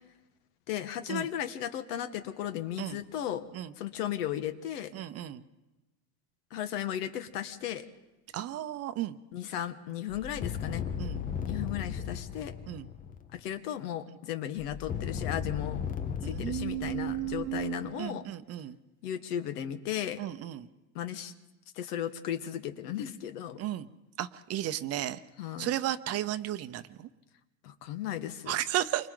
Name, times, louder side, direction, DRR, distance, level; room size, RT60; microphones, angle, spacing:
voice 1, 0.7-3.4 3.8-4.9 6.5-7.9 9.3-10.9 11.5-12.5 13.3-15.8 16.2-18.2 19.0-20.2 20.9-21.3 21.7-23.6 25.4-25.7 27.6-28.6, left 10 dB, 85° left, 9 dB, 1.6 m, -35 dB
voice 2, 4.9-5.4 8.3-9.2 11.0-11.2 12.7-12.9 16.2-18.8 20.2-20.7 23.6-23.9 24.2-25.2 25.6-27.1 28.5-29.1, right 13 dB, 35° right, 12 dB, 0.7 m, -34 dB
sound 1, 10.1-13.4 14.6-17.9, left 7 dB, 20° left, 0.6 m, -36 dB
28.5 x 25.0 x 3.9 m, 1.0 s
supercardioid pair, 145°, 45 cm